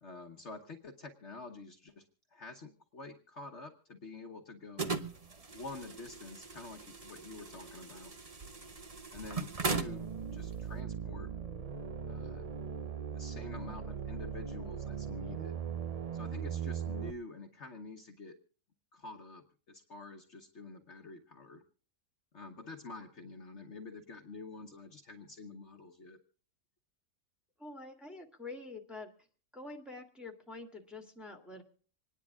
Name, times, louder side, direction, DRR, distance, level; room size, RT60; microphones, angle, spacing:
voice 1, 0.0-2.0 2.3-4.9 5.5-8.1 9.1-11.3 12.1-12.5 13.1-15.6 16.1-18.3 18.9-21.6 22.3-26.2, left 3 dB, 50° left, 3 dB, 1.4 m, -48 dB
sound 1, 4.8-10.8, right 4 dB, 30° right, 0.8 m, -39 dB
sound 2, 9.7-17.1, right 7 dB, 60° right, 0.3 m, -39 dB
voice 2, 27.6-29.1 29.5-31.6, left 3 dB, ahead, 3 dB, 1.8 m, -46 dB
26.5 x 10.0 x 3.6 m, 0.42 s
omnidirectional pair, 1.7 m